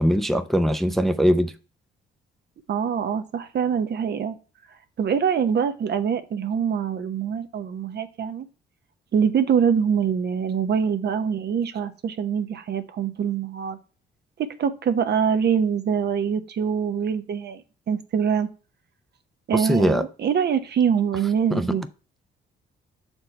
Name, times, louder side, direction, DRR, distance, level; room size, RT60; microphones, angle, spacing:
voice 1, 0.0-1.5 19.5-20.0 21.5-21.8, equal, ahead, 0.5 m, -21 dB
voice 2, 2.7-4.4 5.0-8.5 9.1-13.8 14.4-17.6 17.9-18.5 19.5-21.8, right 7 dB, 55° right, 0.9 m, -24 dB
6.6 x 4.5 x 4.4 m
cardioid pair, 90°, 20 cm